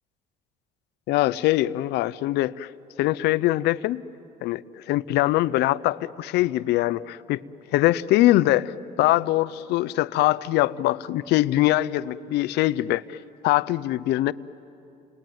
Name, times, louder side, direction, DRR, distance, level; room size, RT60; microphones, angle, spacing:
voice 1, 1.1-2.7 3.0-4.0 4.4-7.4 7.7-13.2 13.4-14.3, left 16 dB, 85° left, 16 dB, 0.6 m, -23 dB
30.0 x 21.0 x 9.3 m, 2.8 s
cardioid pair, 110°, 17 cm